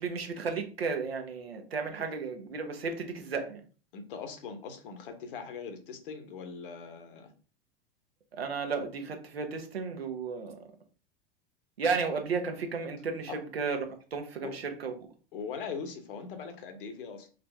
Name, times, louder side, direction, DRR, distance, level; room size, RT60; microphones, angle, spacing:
voice 1, 0.0-3.6 8.3-10.7 11.8-13.9 14.1-15.1, right 5 dB, 75° right, 1.0 m, -33 dB
voice 2, 3.9-7.3 13.3-13.4 14.4-14.6 15.3-17.3, left 5 dB, 60° left, 1.1 m, -41 dB
3.9 x 3.4 x 3.4 m
figure-of-eight pair, 85°, 31 cm